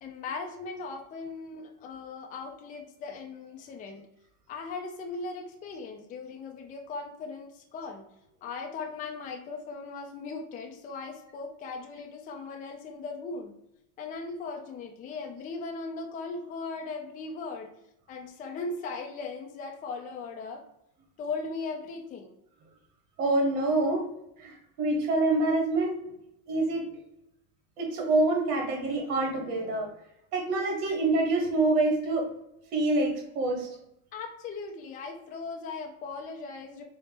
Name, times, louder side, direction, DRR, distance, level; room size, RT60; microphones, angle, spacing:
voice 1, 0.0-4.1 4.5-8.0 8.4-13.5 14.0-17.7 18.1-20.7 21.2-22.3 25.5-25.6 30.8-31.0 34.1-36.8, left 4 dB, 20° left, 3 dB, 0.3 m, -38 dB
voice 2, 23.2-24.1 24.4-25.9 26.5-26.8 27.8-29.9 30.3-32.3 32.7-33.7, right 2 dB, 85° right, 2 dB, 1.2 m, -26 dB
4.3 x 2.1 x 3.1 m, 0.81 s
supercardioid pair, 110°, 46 cm